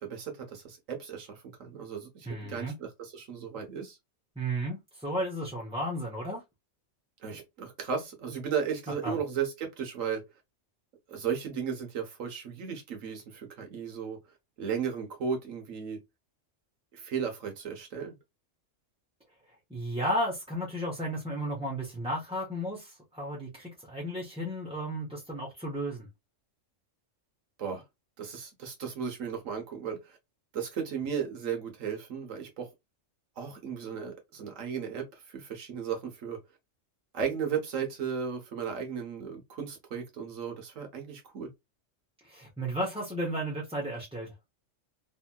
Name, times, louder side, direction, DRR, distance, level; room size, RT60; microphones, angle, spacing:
voice 1, 0.0-4.0 7.2-10.2 11.1-14.2 14.6-16.0 16.9-18.1 27.6-27.8 28.2-30.2 30.5-32.7 33.4-36.4 37.1-41.5, right 7 dB, 90° right, 1.3 m, -35 dB
voice 2, 2.3-2.7 4.4-6.4 9.0-9.2 19.7-26.1 42.2-44.3, equal, 5° right, 0.6 m, -33 dB
3.1 x 2.7 x 2.3 m
omnidirectional pair, 1.3 m